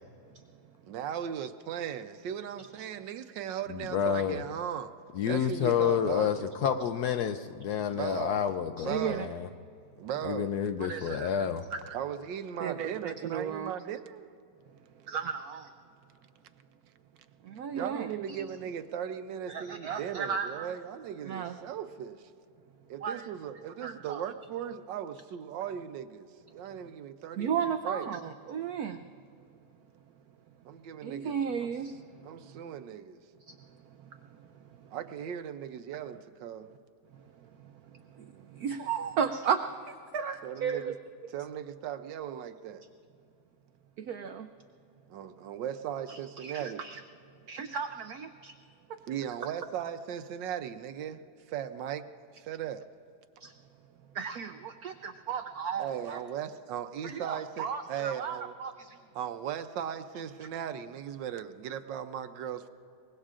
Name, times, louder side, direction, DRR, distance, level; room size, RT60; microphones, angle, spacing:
voice 1, 0.9-4.9 5.3-6.9 7.9-8.4 8.8-9.4 10.0-10.6 11.9-14.3 17.7-22.2 22.9-28.1 30.6-31.7 32.2-33.2 34.9-36.7 40.4-40.9 41.3-42.8 45.1-46.8 49.1-51.2 51.5-52.0 52.3-52.8 55.8-58.5 59.1-62.7, right 9 dB, 70° right, 10 dB, 1.2 m, -37 dB
voice 2, 3.7-4.4 5.1-9.5 10.2-11.6, left 8 dB, 75° left, 8 dB, 0.9 m, -29 dB
voice 3, 8.8-9.3 10.8-11.3 11.7-11.8 12.6-13.7 15.1-15.7 17.4-18.4 19.5-20.7 21.2-21.6 23.0-23.3 23.8-24.2 27.4-29.0 31.0-32.0 33.5-33.6 38.2-40.9 44.0-44.5 46.1-47.0 47.5-48.5 53.4-53.5 54.1-56.2 57.0-59.0, right 7 dB, 90° right, 7 dB, 0.8 m, -34 dB
23.5 x 21.0 x 2.5 m, 2.5 s
omnidirectional pair, 2.2 m